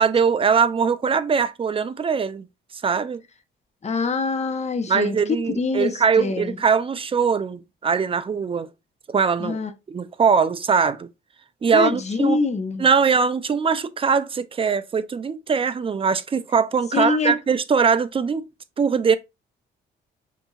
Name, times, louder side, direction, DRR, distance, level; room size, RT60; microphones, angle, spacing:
voice 1, 0.0-2.5 2.8-3.2 4.9-8.7 9.1-9.6 9.9-11.1 11.6-12.4 12.8-18.5 18.8-19.2, right 6 dB, 25° right, 0.5 m, -21 dB
voice 2, 3.8-6.6 9.4-9.7 11.7-12.9 16.9-17.4, left 4 dB, 35° left, 0.9 m, -24 dB
5.3 x 2.8 x 2.4 m
cardioid pair, 90°, 20 cm